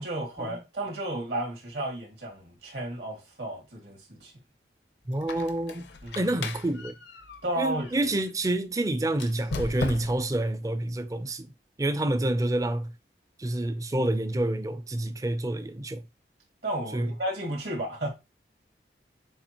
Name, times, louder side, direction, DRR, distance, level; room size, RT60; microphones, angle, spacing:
voice 1, 0.0-4.3 6.0-6.2 7.4-7.9 16.6-18.1, right 1 dB, 70° right, 2.2 m, -33 dB
Squeak, 5.1-8.3 9.1-10.4, left 3 dB, 75° left, 0.6 m, -37 dB
voice 2, 5.1-6.9 7.6-11.5 11.8-12.9 13.4-16.0 16.9-17.1, right 1 dB, 20° right, 0.4 m, -28 dB
7.1 x 2.5 x 2.9 m
head